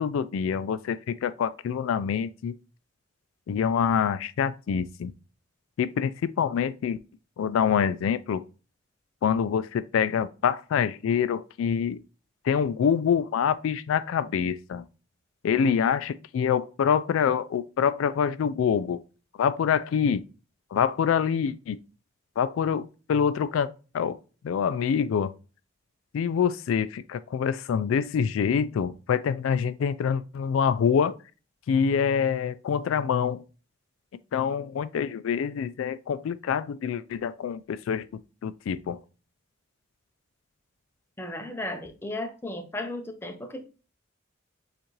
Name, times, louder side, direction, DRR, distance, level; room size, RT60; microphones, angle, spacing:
voice 1, 0.0-2.5 3.5-5.1 5.8-7.0 7.4-8.4 9.2-12.0 12.4-14.8 15.4-19.0 19.4-20.2 20.7-21.8 22.4-24.2 24.4-25.3 26.1-31.2 31.7-33.4 34.3-38.1 38.4-39.0, left 7 dB, 85° left, 0.3 m, -26 dB
voice 2, 41.2-43.6, left 1 dB, 10° left, 0.5 m, -35 dB
6.9 x 2.5 x 3.1 m
head